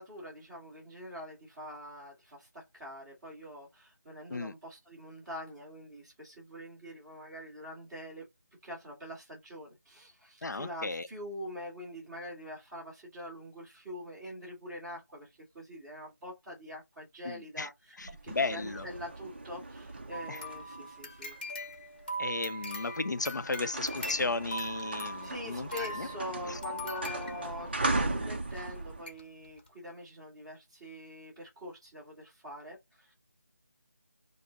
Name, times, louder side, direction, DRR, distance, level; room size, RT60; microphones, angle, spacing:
voice 1, 0.0-8.3 8.6-21.3 24.9-33.1, left 1 dB, 10° right, 1.3 m, -44 dB
voice 2, 10.4-11.1 17.2-17.7 18.0-18.9 20.3-20.4 22.2-25.7 26.0-26.1 26.4-26.6, left 3 dB, 80° left, 0.6 m, -34 dB
sound 1, 18.0-22.2 22.8-23.0 23.2-29.0, right 2 dB, 35° right, 0.6 m, -38 dB
sound 2, 20.1-27.9 28.6-28.7 29.1-29.2 29.6-29.7, equal, 30° left, 1.0 m, -41 dB
5.1 x 2.1 x 3.7 m
figure-of-eight pair, 170°, 10 cm